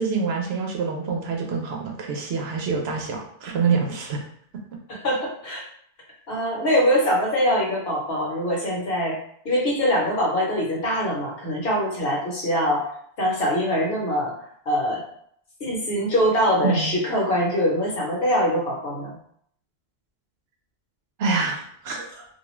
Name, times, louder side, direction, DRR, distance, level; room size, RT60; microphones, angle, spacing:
voice 1, 0.0-4.2 16.6-17.0 21.2-22.3, right 5 dB, 70° right, 1 dB, 0.8 m, -26 dB
voice 2, 4.9-5.6 6.3-9.2 9.4-12.9 13.2-14.3 14.7-15.0 15.6-19.1, equal, 60° left, -3 dB, 1.0 m, -23 dB
2.4 x 2.3 x 3.0 m, 0.65 s
omnidirectional pair, 1.1 m